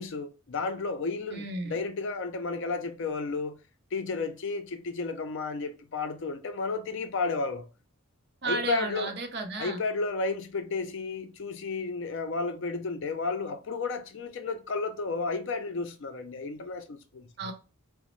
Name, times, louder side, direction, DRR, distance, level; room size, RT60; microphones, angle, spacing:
voice 1, 0.0-3.6 3.9-7.7 8.4-9.1 9.6-17.5, left 4 dB, 55° left, 0.4 m, -32 dB
voice 2, 1.3-1.8 8.4-9.8 17.4-17.5, right 3 dB, 50° right, 0.5 m, -33 dB
2.9 x 2.0 x 3.0 m
head